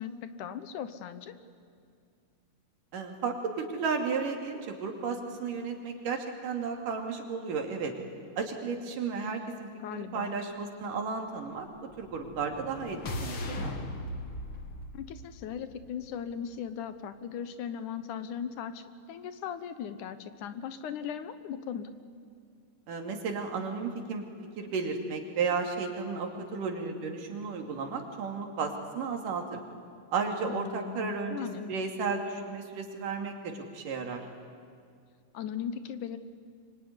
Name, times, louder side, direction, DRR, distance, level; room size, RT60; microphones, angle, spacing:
voice 1, 0.0-1.4 9.8-10.4 14.9-21.9 30.5-31.7 35.3-36.2, left 8 dB, 75° left, 11 dB, 2.6 m, -38 dB
voice 2, 2.9-7.9 8.4-11.7 12.0-13.7 22.9-24.3 24.6-29.6 30.1-34.2, right 5 dB, 90° right, 4 dB, 4.1 m, -33 dB
sound 1, 11.9-16.1, left 1 dB, 45° left, 2.5 m, -38 dB
24.5 x 24.5 x 9.9 m, 2.3 s
omnidirectional pair, 3.6 m